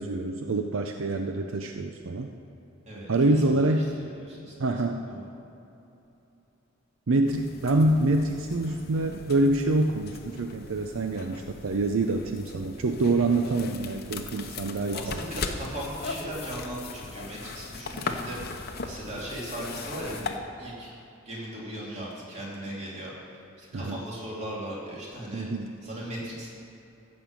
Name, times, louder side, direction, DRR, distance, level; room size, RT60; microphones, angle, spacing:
voice 1, 0.0-2.3 3.1-3.9 4.6-5.0 7.1-15.2 23.7-24.0 25.3-25.7, right 2 dB, 75° right, 4 dB, 0.6 m, -26 dB
voice 2, 2.8-4.5 5.0-5.2 14.9-20.9 21.2-25.5 25.8-26.5, right 1 dB, 30° right, -6 dB, 2.9 m, -38 dB
sound 1, 7.3-20.4, left 4 dB, 50° left, 0.7 m, -39 dB
15.0 x 5.4 x 7.3 m, 2.9 s
head